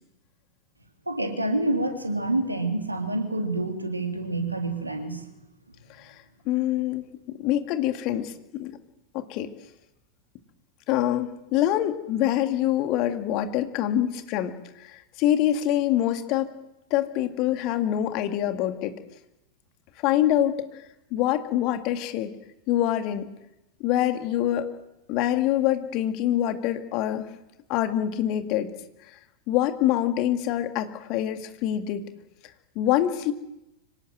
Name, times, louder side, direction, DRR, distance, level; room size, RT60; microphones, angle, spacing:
voice 1, 1.1-5.3, right 2 dB, 85° right, 4 dB, 3.2 m, -27 dB
voice 2, 6.5-8.7 9.1-9.5 10.9-14.5 14.8-16.5 16.9-18.9 20.0-20.7 21.1-22.3 22.7-23.3 23.8-24.7 25.1-27.3 27.7-28.7 29.5-32.0 32.8-33.3, left 12 dB, 40° left, 7 dB, 2.1 m, -25 dB
25.5 x 18.0 x 7.9 m, 0.91 s
figure-of-eight pair, 90°, 0 cm